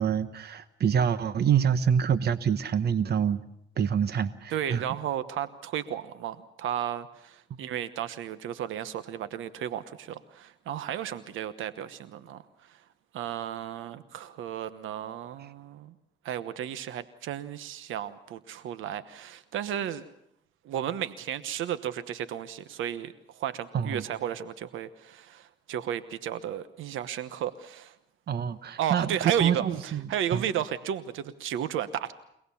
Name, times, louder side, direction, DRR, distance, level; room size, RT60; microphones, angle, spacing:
voice 1, 0.0-3.4 3.8-4.8 23.7-24.0 28.3-30.4, right 8 dB, 55° right, 13 dB, 1.1 m, -26 dB
voice 2, 4.5-12.4 12.7-12.8 13.1-15.9 16.2-20.0 20.6-27.9 28.8-32.1, right 10 dB, 80° right, 13 dB, 1.1 m, -33 dB
25.0 x 19.0 x 7.1 m, 0.78 s
cardioid pair, 90°, 20 cm